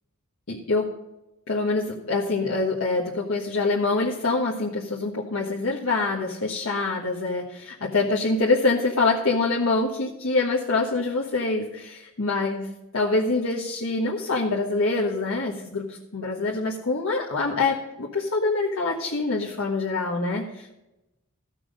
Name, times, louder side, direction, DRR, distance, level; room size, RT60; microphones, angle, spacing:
voice 1, 0.5-0.9 1.5-12.6 12.9-20.8, left 3 dB, 80° left, -5 dB, 1.4 m, -25 dB
14.5 x 6.1 x 5.2 m, 0.93 s
head